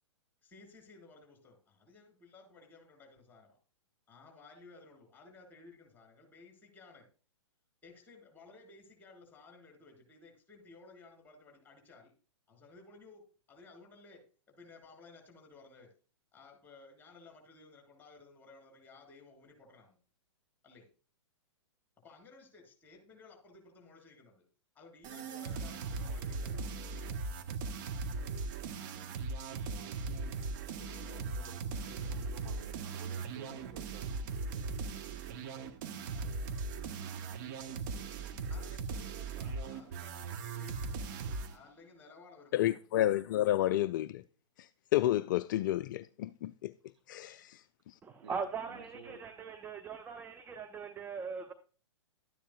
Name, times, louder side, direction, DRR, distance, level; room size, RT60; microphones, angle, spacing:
voice 1, 0.4-3.6 4.1-7.0 7.8-12.1 12.5-14.2 14.5-15.9 16.3-20.0 20.6-20.9 22.0-24.4 24.7-26.9 38.5-41.1 41.5-42.7, left 3 dB, 10° left, 4.8 m, -57 dB
sound 1, 25.0-41.6, right 4 dB, 40° right, 1.1 m, -39 dB
voice 2, 30.7-34.1 48.2-48.3 48.7-49.2, right 5 dB, 60° right, 1.8 m, -52 dB
voice 3, 42.5-44.2 44.9-46.7 47.1-47.6, left 14 dB, 40° left, 0.4 m, -30 dB
voice 4, 48.0-51.5, right 5 dB, 15° right, 0.7 m, -40 dB
13.0 x 10.0 x 2.4 m
figure-of-eight pair, 110°, 16 cm